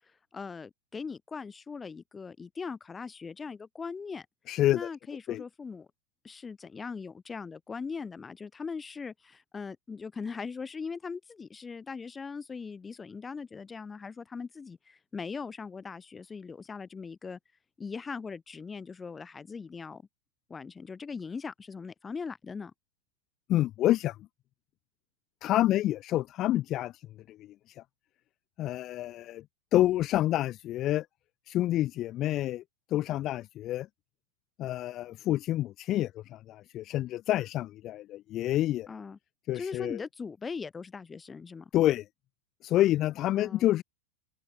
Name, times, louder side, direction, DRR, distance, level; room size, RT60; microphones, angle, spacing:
voice 1, 0.3-4.3 4.7-5.9 6.2-17.4 17.8-20.0 20.5-22.7 38.9-39.2 39.5-41.7 43.3-43.7, left 5 dB, 15° left, 6.2 m, -40 dB
voice 2, 4.5-4.9 5.3-5.4 23.5-24.2 25.4-27.8 28.6-29.4 29.7-31.1 31.5-32.6 32.9-33.9 34.6-38.9 39.5-40.0 41.7-42.0 42.6-43.8, left 14 dB, 35° left, 0.9 m, -28 dB
figure-of-eight pair, 90°, 0 cm